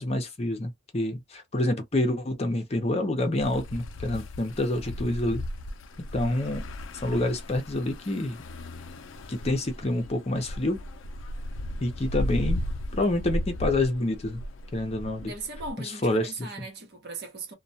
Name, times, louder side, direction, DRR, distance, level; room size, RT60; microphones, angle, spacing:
voice 1, 0.0-5.4 6.0-6.6 7.0-8.4 9.3-10.8 11.8-12.6 12.9-14.4 14.7-15.3 15.8-16.5, left 1 dB, 35° left, 0.6 m, -27 dB
sound 1, 3.4-15.7, left 1 dB, 85° left, 0.4 m, -35 dB
voice 2, 15.2-17.5, right 3 dB, 55° right, 0.9 m, -38 dB
2.3 x 2.2 x 2.7 m
head